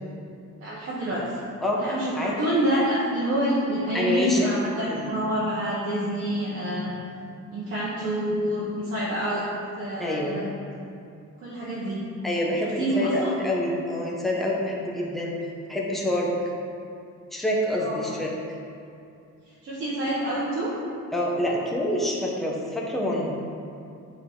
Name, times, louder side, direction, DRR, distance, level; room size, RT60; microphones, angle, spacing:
voice 1, 0.6-1.3 1.8-6.9 7.5-9.4 9.8-10.5 11.4-12.0 12.8-13.3 17.8-18.0 19.6-20.7, right 1 dB, 40° right, -8 dB, 1.0 m, -27 dB
voice 2, 3.9-4.5 4.8-5.1 9.4-9.5 10.0-10.4 12.2-15.3 15.7-16.3 17.3-18.6 21.1-23.3, left 1 dB, ahead, -4 dB, 0.7 m, -27 dB
9.1 x 4.0 x 3.6 m, 2.6 s
cardioid pair, 180°, 31 cm